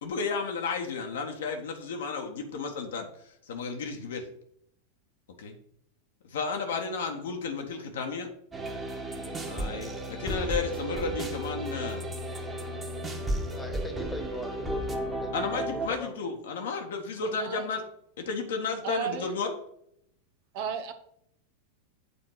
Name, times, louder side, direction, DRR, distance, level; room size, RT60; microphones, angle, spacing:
voice 1, 0.0-3.1 3.5-4.3 5.4-5.5 6.3-8.3 9.5-12.1 15.3-17.8 18.2-19.5, left 5 dB, 60° left, 1.5 m, -33 dB
sound 1, 8.5-15.9, right 1 dB, 15° right, 1.6 m, -33 dB
voice 2, 13.5-16.3 17.2-17.3, left 1 dB, 10° left, 1.6 m, -41 dB
voice 3, 18.8-19.3 20.5-20.9, right 7 dB, 45° right, 0.9 m, -33 dB
8.4 x 4.4 x 6.3 m
figure-of-eight pair, 90°, 0 cm